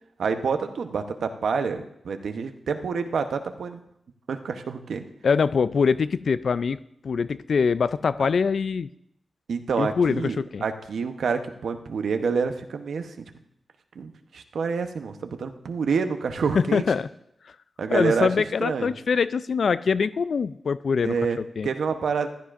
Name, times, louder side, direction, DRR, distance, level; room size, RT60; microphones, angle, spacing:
voice 1, 0.2-3.8 4.3-5.0 8.2-8.3 9.5-13.3 13.9-16.8 17.8-18.3 18.6-18.9 21.0-22.3, right 5 dB, 85° right, 7 dB, 0.8 m, -28 dB
voice 2, 5.2-6.8 7.0-8.9 9.8-10.6 16.5-17.1 17.9-21.2 21.6-21.7, left 5 dB, 65° left, 15 dB, 0.3 m, -23 dB
14.5 x 13.0 x 2.5 m, 0.76 s
wide cardioid pair, 100°, 0 cm